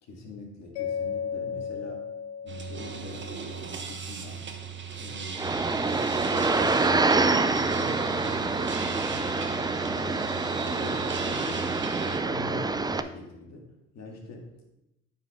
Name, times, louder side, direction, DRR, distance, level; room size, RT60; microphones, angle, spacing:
voice 1, 0.0-2.1 2.4-4.4 4.9-5.4 6.2-9.4 9.8-10.3 10.8-14.7, left 2 dB, 55° left, 1 dB, 2.2 m, -43 dB
Mallet percussion, 0.8-3.7, left 7 dB, 85° left, 0.6 m, -35 dB
sound 1, 2.5-12.2, right 5 dB, 35° right, 1.1 m, -36 dB
sound 2, 5.4-13.0, right 3 dB, 15° right, 0.5 m, -26 dB
9.3 x 5.2 x 3.6 m, 0.90 s
hypercardioid pair, 60°, 32 cm